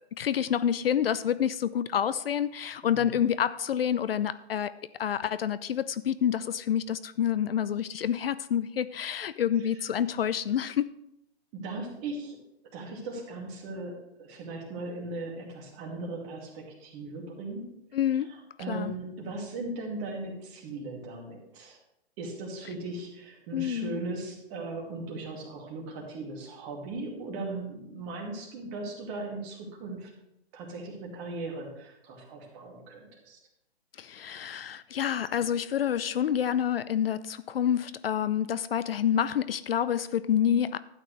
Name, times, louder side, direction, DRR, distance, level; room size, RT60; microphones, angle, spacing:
voice 1, 0.1-4.7 5.0-10.9 17.9-18.3 18.7-18.9 23.5-24.0 34.0-40.8, left 9 dB, 65° left, 16 dB, 0.5 m, -28 dB
voice 2, 2.8-3.2 9.7-9.8 11.5-12.4 12.7-17.7 18.3-21.8 22.2-30.1 30.5-33.4, right 2 dB, 25° right, -1 dB, 2.4 m, -38 dB
12.0 x 9.0 x 3.2 m, 0.82 s
hypercardioid pair, 140°, 32 cm